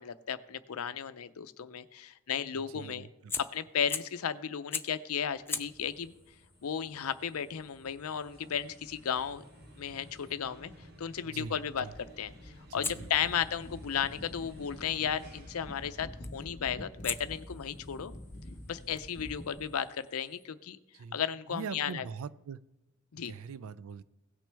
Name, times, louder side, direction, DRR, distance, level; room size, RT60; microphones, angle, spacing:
voice 1, 0.0-3.1 3.4-6.1 6.6-9.4 9.8-10.7 11.0-18.1 18.7-20.8 21.1-22.1 23.1-23.3, left 8 dB, 80° left, 13 dB, 0.5 m, -34 dB
voice 2, 2.7-3.3 11.2-11.9 12.7-13.1 20.9-21.2 21.5-22.6 23.2-24.0, right 5 dB, 70° right, 17 dB, 0.4 m, -42 dB
Fire, 3.3-4.3 4.7-5.1 5.5-10.4 12.8-14.9 16.2-16.5 17.0-20.5, left 4 dB, 10° left, 0.4 m, -44 dB
sound 1, 5.1-19.6, equal, 50° right, 1.2 m, -56 dB
sound 2, 11.9-19.8, left 1 dB, 35° left, 0.7 m, -47 dB
17.0 x 6.1 x 3.4 m, 0.94 s
head